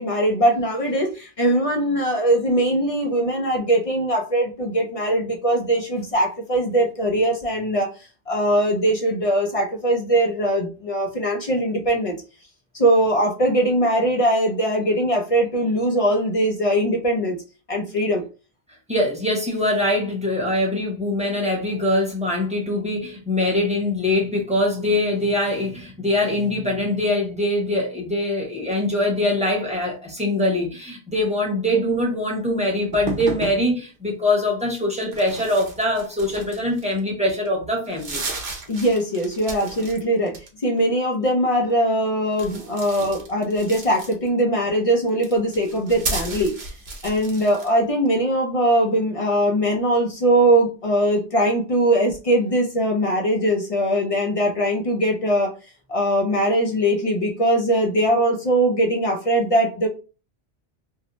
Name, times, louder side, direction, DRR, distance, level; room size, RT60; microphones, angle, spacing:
voice 1, 0.0-7.9 8.3-12.2 12.7-17.4 17.7-18.2 38.7-40.3 40.6-46.5 47.0-55.5 55.9-59.9, right 1 dB, 50° left, 0.4 m, -21 dB
voice 2, 18.9-38.2, left 1 dB, 5° right, 0.8 m, -23 dB
sound 1, 32.9-33.6 35.0-37.0 37.4-37.5 37.8-40.0 40.3-40.8 42.3-44.4 45.1-47.7, right 3 dB, 50° right, 0.8 m, -33 dB
2.7 x 2.0 x 2.9 m
omnidirectional pair, 1.1 m